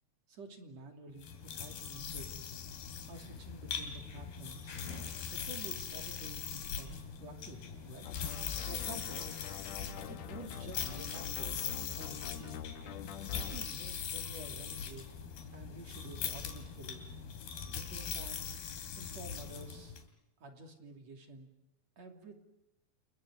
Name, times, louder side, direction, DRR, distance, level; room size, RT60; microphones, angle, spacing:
voice 1, 0.3-2.6 3.1-4.7 5.3-8.1 8.6-9.3 10.1-11.6 12.0-12.7 13.3-15.0 15.5-17.1 17.7-18.5 19.0-20.0 20.4-21.5 22.0-22.3, right 2 dB, 45° right, 3 dB, 3.8 m, -50 dB
sound 1, 1.2-20.0, left 7 dB, 80° left, 4.6 m, -41 dB
sound 2, 8.0-13.6, left 9 dB, 65° left, 1.8 m, -46 dB
30.0 x 29.5 x 6.5 m, 0.89 s
omnidirectional pair, 4.4 m